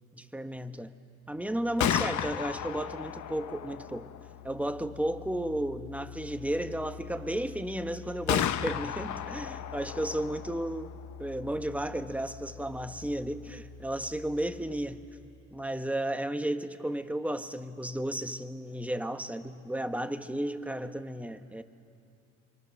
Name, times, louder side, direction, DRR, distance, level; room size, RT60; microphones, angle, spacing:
voice 1, 0.1-0.9 1.3-4.1 4.4-10.9 11.2-15.0 15.5-21.6, right 1 dB, 5° right, 9 dB, 1.1 m, -33 dB
Gunshot gunfire, 1.6-15.4, left 10 dB, 70° left, 0.9 m, -37 dB
26.0 x 24.5 x 6.5 m, 2.5 s
cardioid pair, 90°, 30 cm